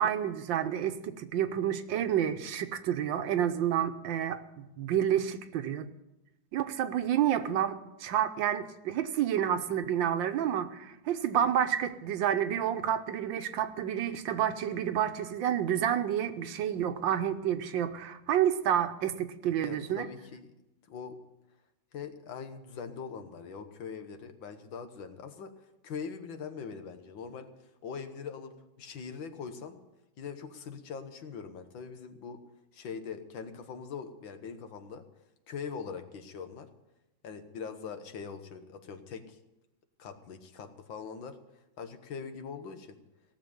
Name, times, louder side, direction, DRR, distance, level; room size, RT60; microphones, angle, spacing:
voice 1, 0.0-5.9 6.5-20.1, right 10 dB, 75° right, 10 dB, 1.6 m, -29 dB
voice 2, 19.6-20.5 20.9-21.2 21.9-25.5 25.8-27.5 27.8-29.8 30.2-32.4 32.7-35.0 35.5-36.7 37.2-39.4 40.0-41.4 41.8-43.0, left 6 dB, 75° left, 8 dB, 1.9 m, -42 dB
17.0 x 7.4 x 9.5 m, 0.95 s
omnidirectional pair, 2.1 m